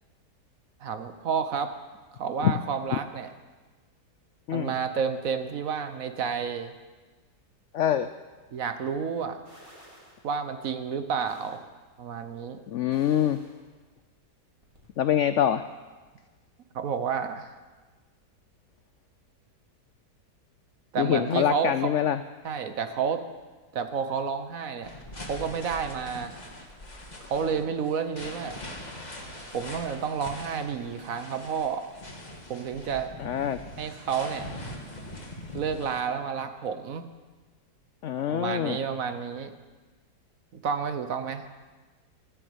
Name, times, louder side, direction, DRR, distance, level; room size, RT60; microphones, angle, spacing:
voice 1, 0.8-1.7 2.1-3.3 4.5-6.7 8.5-9.4 10.2-11.6 12.0-12.6 16.7-17.5 20.9-21.7 22.4-23.2 23.7-24.9 25.2-26.3 27.3-28.6 29.5-31.9 32.5-33.1 33.8-34.5 35.5-37.1 38.3-39.5 40.6-41.5, right 6 dB, 60° right, 9 dB, 1.2 m, -30 dB
voice 2, 7.7-8.1 12.7-13.4 15.0-15.6 21.0-22.2 33.2-33.6 38.0-38.8, left 10 dB, 85° left, 11 dB, 0.6 m, -25 dB
sound 1, 9.4-10.2 11.2-11.6 12.9-13.6 14.6-14.9, equal, 15° right, 3.3 m, -51 dB
sound 2, 24.8-36.0, left 1 dB, 25° left, 1.8 m, -42 dB
13.5 x 9.6 x 8.0 m, 1.3 s
omnidirectional pair, 1.8 m